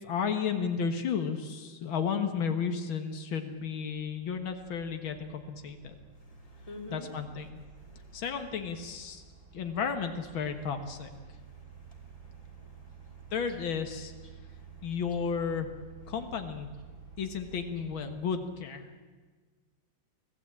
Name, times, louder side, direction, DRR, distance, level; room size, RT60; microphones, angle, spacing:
voice 1, 0.0-6.0 6.9-7.6 8.1-9.2 9.5-11.1 13.3-14.1 14.8-15.7 16.1-16.7 17.2-19.0, left 6 dB, 85° left, 7 dB, 2.3 m, -33 dB
sound 1, 3.1-18.2, right 5 dB, 85° right, 7.8 m, -52 dB
voice 2, 6.2-7.1 7.8-8.2 11.4-13.3 14.3-14.8, left 1 dB, 15° left, 1 dB, 3.5 m, -51 dB
25.0 x 16.5 x 8.8 m, 1.4 s
omnidirectional pair, 2.1 m